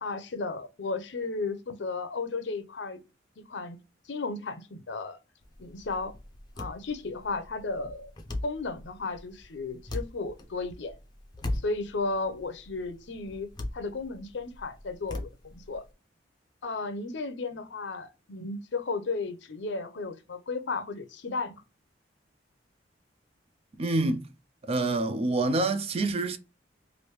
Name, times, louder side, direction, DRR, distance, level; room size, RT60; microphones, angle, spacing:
voice 1, 0.0-3.0 3.4-3.8 4.1-5.2 5.6-6.1 6.6-8.1 8.4-11.0 11.5-13.5 13.7-15.8 16.6-21.6, left 3 dB, 70° left, 0.6 m, -34 dB
sound 1, 5.4-15.9, left 1 dB, 25° left, 0.5 m, -40 dB
voice 2, 23.8-24.3 24.7-26.4, right 2 dB, 30° right, 0.4 m, -26 dB
3.2 x 2.6 x 3.0 m
head